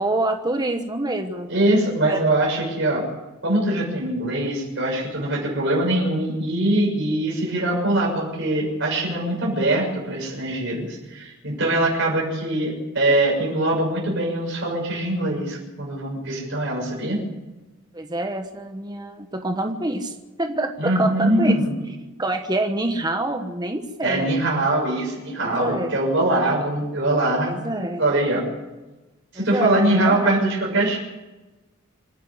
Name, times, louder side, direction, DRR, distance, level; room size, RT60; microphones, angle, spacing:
voice 1, 0.0-1.5 2.1-2.2 17.9-21.6 22.2-24.5 25.4-25.9 27.4-28.0 29.3-30.3, right 2 dB, 20° right, 5 dB, 1.3 m, -26 dB
voice 2, 1.5-3.1 3.4-17.2 20.8-21.7 24.0-28.5 29.3-31.0, right 1 dB, 60° right, -3 dB, 6.8 m, -22 dB
26.5 x 10.0 x 9.7 m, 1.1 s
head